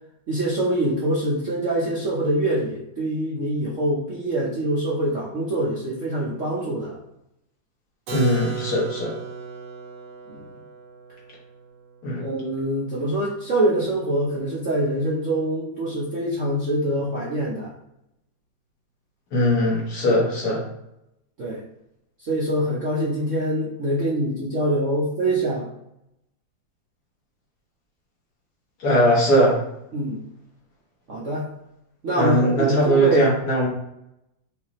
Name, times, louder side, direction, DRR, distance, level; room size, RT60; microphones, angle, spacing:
voice 1, 0.3-7.0 10.3-10.5 12.2-17.7 21.4-21.6 22.2-25.7 29.9-30.2 31.1-31.5 32.0-33.3, right 1 dB, 55° right, -6 dB, 0.9 m, -24 dB
voice 2, 8.1-9.1 12.0-12.3 19.3-20.6 28.8-29.6 32.2-33.7, equal, 55° left, -4 dB, 1.7 m, -20 dB
Keyboard (musical), 8.1-13.7, right 6 dB, 70° right, 1.5 m, -36 dB
5.5 x 2.7 x 3.1 m, 0.81 s
omnidirectional pair, 2.2 m